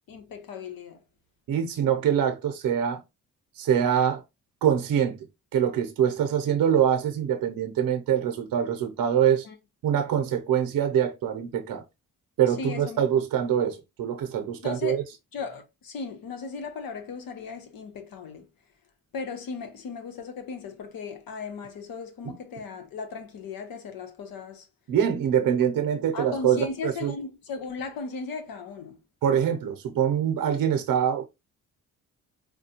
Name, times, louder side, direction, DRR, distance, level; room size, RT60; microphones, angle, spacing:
voice 1, 0.1-1.0 9.4-9.6 12.5-13.0 14.6-15.0 15.3-18.5 19.1-24.7 26.1-29.0, left 5 dB, 90° left, 1.0 m, -37 dB
voice 2, 1.5-3.0 3.6-4.2 4.6-5.2 5.5-9.5 9.8-11.8 12.4-15.0 22.2-22.3 24.9-27.1 29.2-31.3, right 9 dB, 75° right, 0.6 m, -24 dB
4.8 x 2.3 x 2.8 m
cardioid pair, 95°, 34 cm